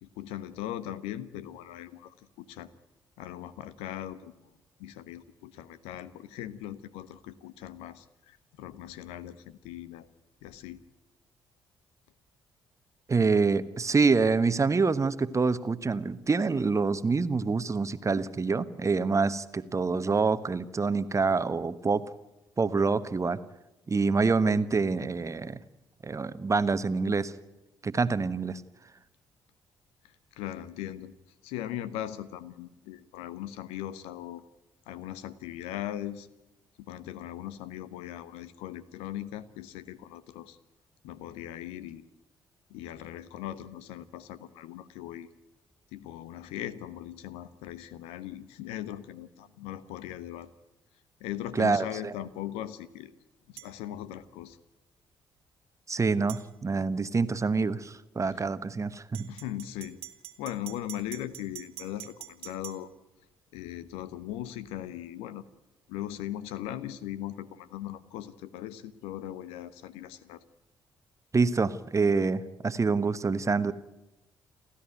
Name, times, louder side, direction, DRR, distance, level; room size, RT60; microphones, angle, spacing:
voice 1, 0.0-2.7 3.2-4.4 4.8-10.1 10.4-10.8 30.4-31.1 31.4-34.4 34.9-36.3 36.8-40.6 41.0-42.0 42.7-45.3 45.9-50.5 51.2-53.1 53.5-54.6 58.3-58.4 59.3-60.0 60.4-62.9 63.5-65.4 65.9-70.4, left 12 dB, 65° left, 15 dB, 1.1 m, -39 dB
voice 2, 13.1-22.0 22.6-23.4 23.9-25.6 26.0-27.3 27.8-28.6 51.5-51.9 55.9-59.3 71.3-73.7, right 4 dB, 30° right, 13 dB, 1.2 m, -26 dB
sound 1, 53.6-53.7 56.3-56.5 59.1-62.8, right 15 dB, 65° right, 1.5 m, -44 dB
30.0 x 13.0 x 9.3 m, 0.99 s
figure-of-eight pair, 40°, 11 cm